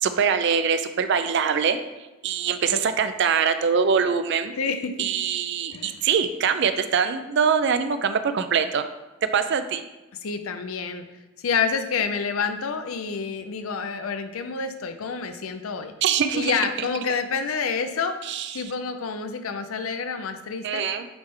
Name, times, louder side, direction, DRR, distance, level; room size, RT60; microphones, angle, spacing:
voice 1, 0.0-1.8 2.2-4.5 5.0-8.9 9.3-9.9 16.0-16.6 18.3-18.6 20.6-21.1, right 6 dB, 55° right, 10 dB, 0.4 m, -23 dB
voice 2, 4.6-5.1 5.7-6.0 10.2-11.0 11.4-15.9 16.3-18.2 18.5-20.9, left 5 dB, 85° left, 9 dB, 0.5 m, -28 dB
8.0 x 3.3 x 3.6 m, 1.1 s
head